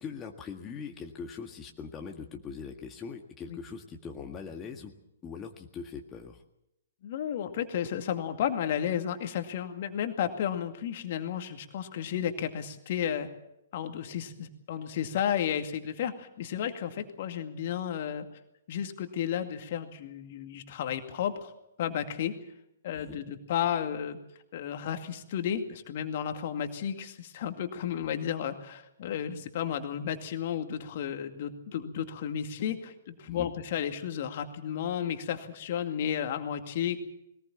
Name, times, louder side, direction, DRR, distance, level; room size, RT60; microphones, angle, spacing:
voice 1, 0.0-4.9 5.2-6.4 22.9-23.2 33.3-33.5, left 6 dB, 20° left, 2 dB, 1.8 m, -41 dB
voice 2, 7.0-13.3 13.7-18.3 18.7-21.5 21.8-22.3 22.8-24.2 24.5-37.0, left 9 dB, 45° left, 6 dB, 2.2 m, -33 dB
21.5 x 19.5 x 7.3 m, 0.83 s
figure-of-eight pair, 120°, 0 cm